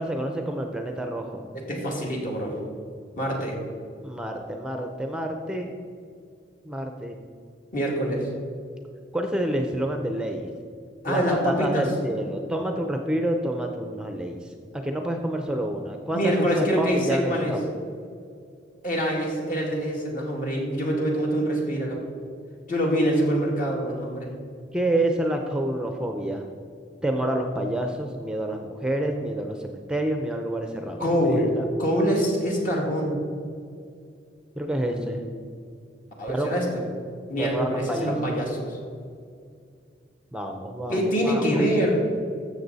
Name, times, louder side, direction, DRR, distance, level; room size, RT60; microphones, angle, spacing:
voice 1, 0.0-1.5 4.0-5.7 6.7-7.2 9.1-10.5 11.1-17.6 24.7-26.4 27.0-31.6 34.6-35.2 36.3-36.6 37.4-38.2 40.3-41.6, right 1 dB, 5° right, 4 dB, 0.6 m, -28 dB
voice 2, 1.5-2.5 3.2-3.6 7.7-8.3 11.0-11.9 16.1-17.5 18.8-22.0 22.7-24.3 31.0-31.5 31.8-33.1 34.8-35.1 36.2-36.7 37.3-38.8 40.9-42.0, equal, 50° left, -2 dB, 2.4 m, -25 dB
13.0 x 7.3 x 4.1 m, 2.3 s
head